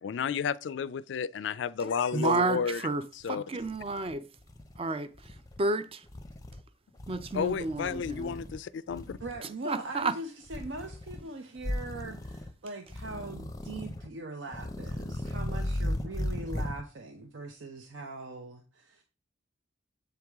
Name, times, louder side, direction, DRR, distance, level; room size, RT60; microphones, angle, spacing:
voice 1, 0.0-2.8 3.2-3.4 7.3-9.2, left 6 dB, 65° left, 0.3 m, -32 dB
voice 2, 2.1-4.3 4.8-6.0 7.1-8.4 9.6-10.2, right 3 dB, 30° right, 0.5 m, -31 dB
sound 1, 3.2-3.3 3.6-4.8 5.2-5.6 6.1-6.6 7.0-8.6 8.9-9.4 10.5-11.2 11.6-12.5 12.9-14.1 14.5-16.8, left 1 dB, 20° left, 0.6 m, -37 dB
voice 3, 9.2-19.0, right 2 dB, 75° right, 0.7 m, -41 dB
7.8 x 4.7 x 3.5 m
head